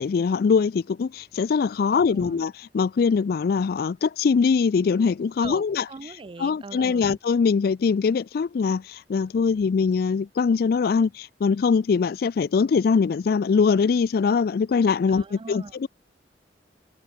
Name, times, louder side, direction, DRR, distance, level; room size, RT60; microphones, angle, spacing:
voice 1, 0.0-5.8 6.4-15.9, left 5 dB, 55° left, 0.3 m, -22 dB
voice 2, 1.9-2.4 5.4-7.2 15.1-15.8, right 3 dB, 30° right, 0.4 m, -41 dB
head